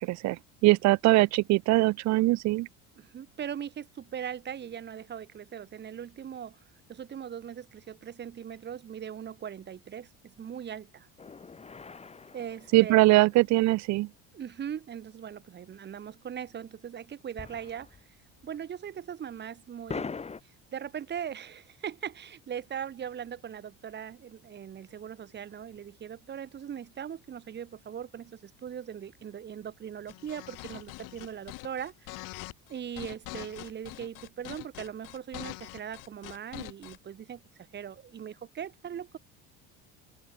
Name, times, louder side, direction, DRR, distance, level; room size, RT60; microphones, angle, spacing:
voice 1, 0.0-2.7 12.7-14.1, right 19 dB, 55° right, 0.8 m, -22 dB
voice 2, 3.0-6.6 6.9-11.1 12.3-13.0 14.3-17.9 18.4-20.1 20.7-32.2 32.7-37.4 37.7-39.2, right 9 dB, 30° right, 2.7 m, -40 dB
sound 1, 11.2-13.6 17.4-18.1 18.4-18.5 19.9-20.4, left 5 dB, 20° left, 6.8 m, -41 dB
sound 2, 30.1-37.0, left 24 dB, 70° left, 1.4 m, -43 dB
open air
cardioid pair, 140°, 33 cm